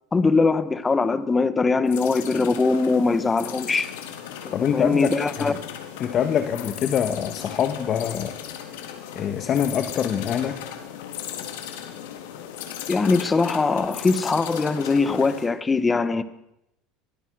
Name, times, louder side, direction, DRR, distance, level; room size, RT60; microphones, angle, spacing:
voice 1, 0.1-3.9 4.7-5.5 12.9-16.2, left 4 dB, 15° left, 1.4 m, -21 dB
sound 1, 1.9-15.5, left 9 dB, 90° left, 3.9 m, -37 dB
voice 2, 4.5-5.6 6.0-8.4 9.1-10.6, left 8 dB, 35° left, 1.5 m, -25 dB
25.0 x 19.5 x 6.4 m
supercardioid pair, 135°, 0 cm